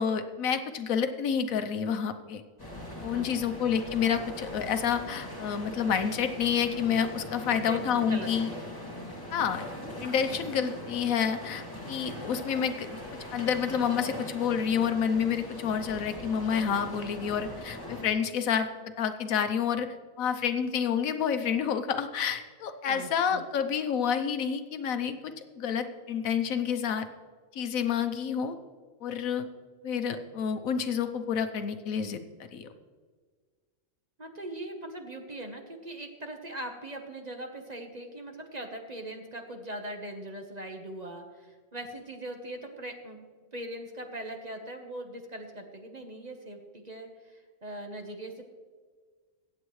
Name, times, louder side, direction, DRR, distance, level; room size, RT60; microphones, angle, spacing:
voice 1, 0.0-2.4 3.0-8.5 9.3-9.6 10.0-12.9 13.3-18.7 19.0-19.9 20.2-27.1 27.5-28.6 29.0-29.5 29.8-32.2 32.5-32.7, left 7 dB, 80° left, 9 dB, 1.2 m, -29 dB
sound 1, 2.6-18.1, left 1 dB, 15° left, 2.4 m, -41 dB
voice 2, 7.5-8.7 22.9-23.4 34.2-43.2 43.5-48.4, right 1 dB, 30° right, 4 dB, 1.1 m, -41 dB
23.0 x 8.5 x 3.2 m, 1.5 s
omnidirectional pair, 1.4 m